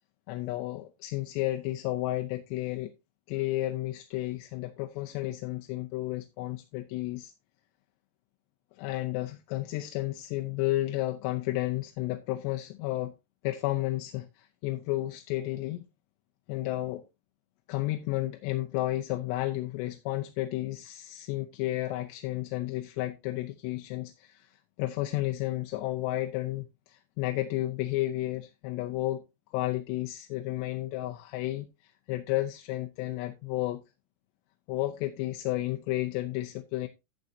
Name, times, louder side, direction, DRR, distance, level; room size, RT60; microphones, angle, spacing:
voice 1, 0.3-2.9 3.3-7.3 8.8-13.1 13.4-15.8 16.5-17.0 17.7-29.2 29.5-33.8 34.7-36.9, left 16 dB, 85° left, 2.9 m, -32 dB
12.0 x 7.5 x 2.7 m
omnidirectional pair, 5.0 m